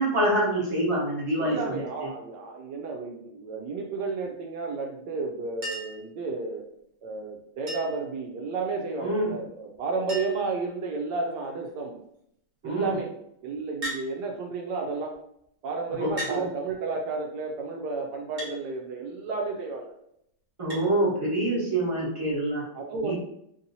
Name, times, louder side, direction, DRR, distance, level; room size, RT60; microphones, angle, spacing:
voice 1, 0.0-2.1 9.0-9.3 12.6-13.0 16.0-16.5 20.6-22.7 23.0-23.1, right 1 dB, 20° right, -7 dB, 1.0 m, -26 dB
voice 2, 1.3-6.7 7.0-11.9 12.6-13.1 13.4-15.1 15.6-19.9 22.7-23.1, right 4 dB, 75° right, 1 dB, 1.1 m, -32 dB
Chink clink, 5.6-6.1 7.7-8.1 9.5-9.6 9.8-9.9 10.1-10.5 11.3-11.7 13.8-14.1 15.1-15.2 16.2-16.4 18.4-18.6 20.7-20.9 22.3-22.4, equal, 40° right, 1.3 m, -36 dB
3.6 x 2.8 x 2.7 m, 0.74 s
omnidirectional pair, 2.0 m